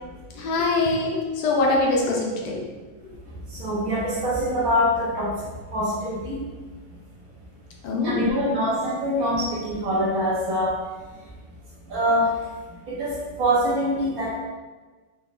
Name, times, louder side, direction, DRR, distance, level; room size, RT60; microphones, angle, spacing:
voice 1, 0.3-2.7 3.0-3.1 7.8-8.3, left 3 dB, 70° left, -2 dB, 1.2 m, -23 dB
voice 2, 3.5-5.4 5.7-6.4 8.0-10.8 11.9-12.4 12.9-14.3, equal, 65° right, -4 dB, 1.0 m, -24 dB
4.0 x 2.1 x 3.7 m, 1.3 s
omnidirectional pair, 1.9 m